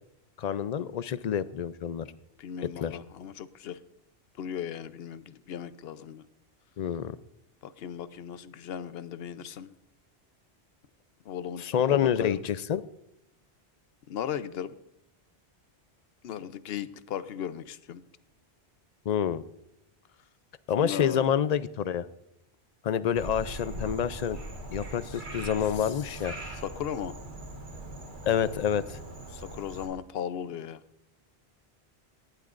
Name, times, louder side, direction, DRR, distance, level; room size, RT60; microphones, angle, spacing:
voice 1, 0.4-2.1 2.8-3.0 6.8-7.2 11.6-12.8 19.1-19.4 20.7-22.1 22.8-24.4 24.7-26.4 28.3-29.0, left 9 dB, 50° left, 15 dB, 0.5 m, -27 dB
voice 2, 2.4-3.8 4.4-6.3 7.6-9.7 11.2-12.4 14.1-14.8 16.2-18.0 20.8-21.3 25.0-25.2 25.8-26.0 26.6-27.1 29.3-30.8, left 9 dB, 70° left, 14 dB, 0.9 m, -37 dB
Frog, 23.2-29.9, right 2 dB, 50° right, 1.9 m, -41 dB
19.0 x 11.5 x 2.5 m, 0.82 s
omnidirectional pair, 1.1 m